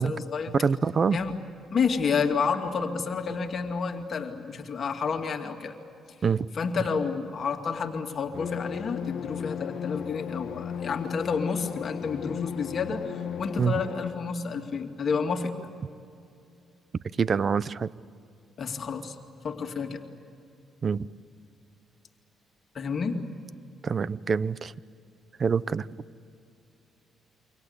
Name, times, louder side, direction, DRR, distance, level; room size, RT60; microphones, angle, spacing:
voice 1, 0.0-0.5 1.1-1.3 1.7-5.8 6.1-6.2 6.5-15.5 18.6-19.2 19.4-20.0 22.7-23.2, left 5 dB, 50° left, 4 dB, 2.5 m, -30 dB
voice 2, 0.5-1.2 6.2-6.5 13.6-13.8 17.2-17.9 20.8-21.1 23.8-24.7 25.4-25.9, right 6 dB, 45° right, 18 dB, 0.7 m, -25 dB
sound 1, 8.3-14.1, left 8 dB, 70° left, 1.1 m, -35 dB
28.5 x 25.0 x 8.2 m, 2.5 s
cardioid pair, 90°, 0 cm